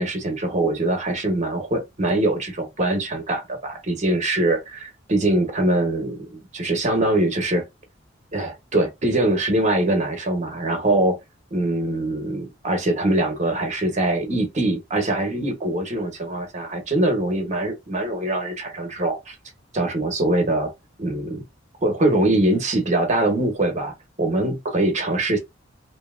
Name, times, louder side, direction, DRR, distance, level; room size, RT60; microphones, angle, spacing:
voice 1, 0.0-7.7 8.3-11.2 11.5-19.3 19.7-20.7 21.0-21.4 21.8-25.4, right 1 dB, 40° right, 0.9 m, -23 dB
2.8 x 2.6 x 2.5 m
head